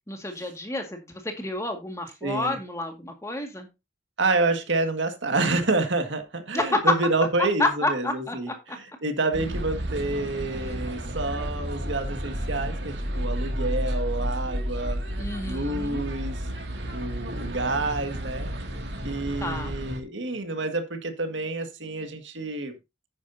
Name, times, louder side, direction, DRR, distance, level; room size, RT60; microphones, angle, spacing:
voice 1, 0.1-3.7 6.5-6.8 7.6-8.4 15.2-16.0 19.4-19.8, left 2 dB, 15° left, 5 dB, 1.9 m, -29 dB
voice 2, 2.2-2.6 4.2-15.0 15.5-16.4 16.9-18.5 19.0-22.7, right 2 dB, 80° right, 6 dB, 1.9 m, -28 dB
sound 1, 9.3-20.0, equal, 65° right, 2.3 m, -31 dB
9.9 x 9.8 x 2.7 m, 0.24 s
head